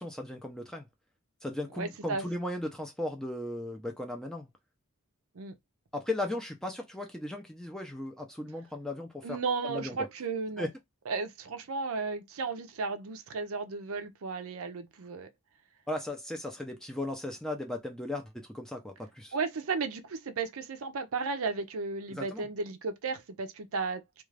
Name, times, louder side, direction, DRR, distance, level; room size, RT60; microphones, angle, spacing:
voice 1, 0.0-0.9 1.4-4.5 5.9-9.4 9.6-10.0 10.6-10.7 15.9-19.3 22.1-22.5, left 1 dB, 5° left, 0.5 m, -36 dB
voice 2, 1.7-2.3 5.4-5.5 9.2-10.7 11.1-15.3 19.3-24.0, right 4 dB, 70° right, 0.5 m, -34 dB
2.4 x 2.4 x 3.2 m
head